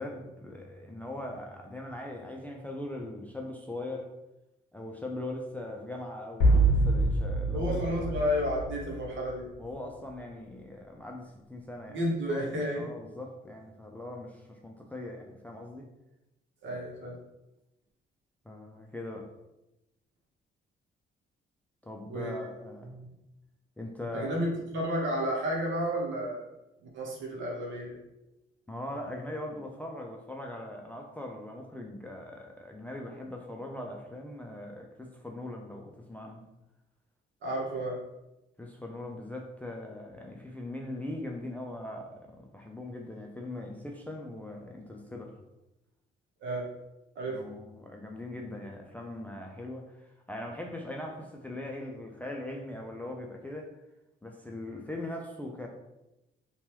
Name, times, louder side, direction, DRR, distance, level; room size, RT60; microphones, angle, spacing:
voice 1, 0.0-4.1 4.7-8.2 9.6-12.0 12.3-15.8 18.5-19.3 21.8-22.9 23.8-24.4 28.7-36.4 38.6-45.4 47.3-53.7 54.2-55.7, left 1 dB, 10° left, 1 dB, 0.3 m, -40 dB
sound 1, 6.4-9.3, right 2 dB, 85° left, 0.6 m, -25 dB
voice 2, 7.5-9.5 11.9-12.8 16.6-17.2 22.1-22.6 22.9-23.1 24.1-26.5 26.8-28.0 37.4-38.0 46.4-46.7 47.2-47.4, equal, 75° right, -1 dB, 0.9 m, -32 dB
2.8 x 2.3 x 3.1 m, 0.93 s
cardioid pair, 90°, 20 cm